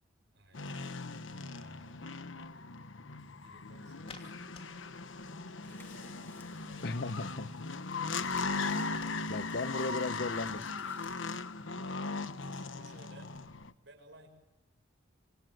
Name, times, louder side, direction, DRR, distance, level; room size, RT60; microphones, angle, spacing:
voice 1, 0.3-1.1 1.3-2.5 3.4-4.4 5.6-7.2 7.5-7.6 10.0-10.5 11.6-13.4 13.8-14.3, right 1 dB, 60° right, 7.0 m, -59 dB
sound 1, 0.5-13.7, left 4 dB, 70° left, 1.2 m, -38 dB
sound 2, 3.2-12.7, left 3 dB, 30° left, 2.9 m, -59 dB
sound 3, 5.6-11.2, left 2 dB, 10° left, 2.0 m, -61 dB
voice 2, 6.8-7.5 9.3-10.6, left 2 dB, 55° left, 0.9 m, -35 dB
27.0 x 26.5 x 7.8 m
head